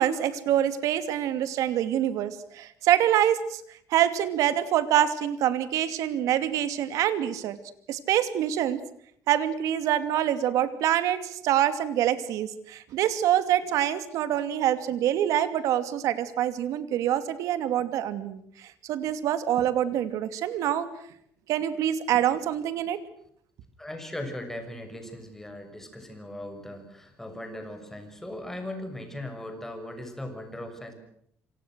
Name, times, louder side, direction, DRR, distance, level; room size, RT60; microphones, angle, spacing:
voice 1, 0.0-3.6 3.9-7.6 7.9-8.8 9.3-20.9 21.5-23.0, right 11 dB, 75° right, 11 dB, 2.6 m, -25 dB
voice 2, 23.8-30.9, left 1 dB, 5° left, 6 dB, 6.4 m, -38 dB
28.0 x 25.5 x 6.3 m, 0.68 s
cardioid pair, 145°, 6 cm